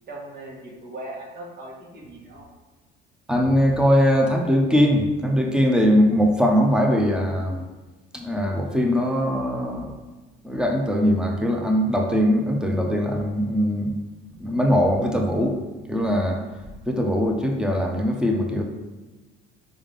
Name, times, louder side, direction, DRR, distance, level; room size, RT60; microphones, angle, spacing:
voice 1, 0.1-2.5, right 1 dB, 50° right, -2 dB, 1.9 m, -39 dB
voice 2, 3.3-7.6 8.1-10.0 10.4-13.9 14.4-15.6 15.9-16.4 16.9-18.6, equal, 5° right, 1 dB, 0.9 m, -21 dB
5.2 x 3.6 x 5.3 m, 1.2 s
supercardioid pair, 95°, 21 cm